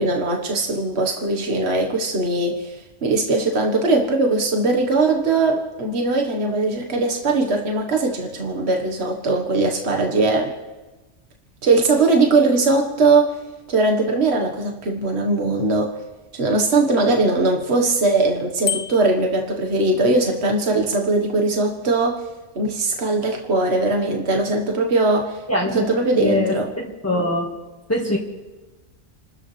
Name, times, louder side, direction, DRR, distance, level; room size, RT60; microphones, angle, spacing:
voice 1, 0.0-2.8 3.0-10.5 11.6-13.4 13.7-15.9 16.3-22.2 22.5-25.4 25.7-26.7, right 3 dB, 60° right, 2 dB, 1.7 m, -20 dB
Bicycle bell, 18.6-19.3, left 9 dB, 75° left, 1.1 m, -27 dB
voice 2, 25.5-25.9 26.2-27.5 27.9-28.2, left 1 dB, 10° left, -3 dB, 1.7 m, -23 dB
29.0 x 13.5 x 3.3 m, 1.1 s
omnidirectional pair, 1.2 m